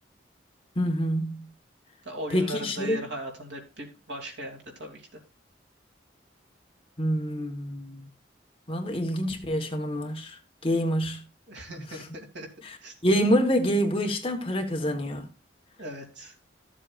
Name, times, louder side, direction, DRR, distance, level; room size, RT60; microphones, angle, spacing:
voice 1, 0.7-1.5 2.3-3.0 7.0-8.1 8.7-11.2 12.6-12.8 13.0-15.3, equal, 30° left, 1.3 m, -26 dB
voice 2, 2.0-5.2 11.5-12.9 15.8-16.3, right 1 dB, 75° right, 2.8 m, -39 dB
13.5 x 7.5 x 2.5 m
head